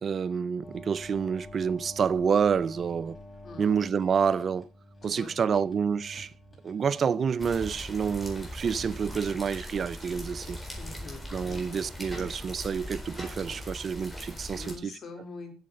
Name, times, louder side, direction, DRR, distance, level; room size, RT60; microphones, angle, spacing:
voice 1, 0.0-3.2 3.6-4.7 5.0-6.3 6.6-10.6 11.3-14.9, right 6 dB, 45° right, 0.5 m, -28 dB
sound 1, 0.6-13.5, left 1 dB, 25° left, 6.1 m, -49 dB
voice 2, 3.4-3.8 5.0-5.5 10.8-11.9 14.5-15.5, left 3 dB, 45° left, 3.7 m, -44 dB
sound 2, 7.4-14.7, left 1 dB, 5° left, 4.3 m, -40 dB
8.1 x 7.2 x 7.7 m
supercardioid pair, 85°, 0 cm